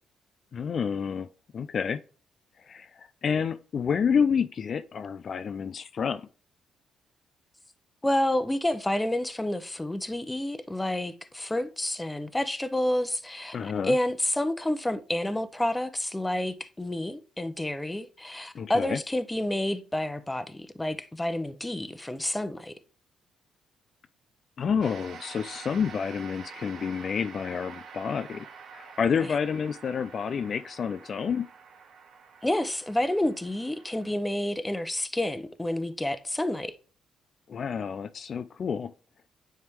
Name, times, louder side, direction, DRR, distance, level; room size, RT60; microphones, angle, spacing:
voice 1, 0.5-1.3 1.5-2.0 2.7-6.3 13.5-13.9 18.5-19.0 24.6-28.5 28.7-31.5 37.5-38.9, left 6 dB, 50° left, 0.3 m, -29 dB
voice 2, 8.0-22.7 29.2-29.3 32.4-36.7, left 1 dB, 10° left, 0.6 m, -29 dB
sound 1, 24.8-34.1, right 6 dB, 60° right, 0.9 m, -47 dB
9.4 x 3.3 x 3.5 m
cardioid pair, 90°, 0 cm